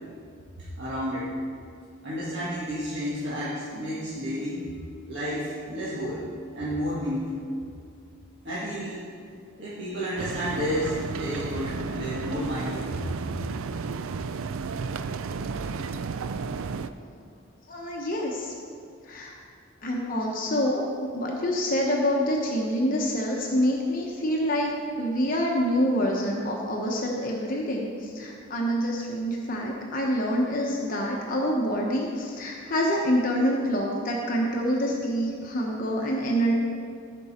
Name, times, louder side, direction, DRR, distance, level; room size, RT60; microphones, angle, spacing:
voice 1, 0.6-1.3 2.0-4.6 5.1-6.3 6.5-7.4 8.4-9.0 9.5-13.0, equal, 55° right, -10 dB, 1.8 m, -31 dB
sound 1, 10.2-16.9, right 5 dB, 80° right, 0.4 m, -33 dB
voice 2, 17.7-18.5 19.0-19.3 19.8-24.7 25.0-36.5, equal, 40° left, -1 dB, 0.9 m, -26 dB
15.0 x 5.3 x 4.3 m, 2.3 s
head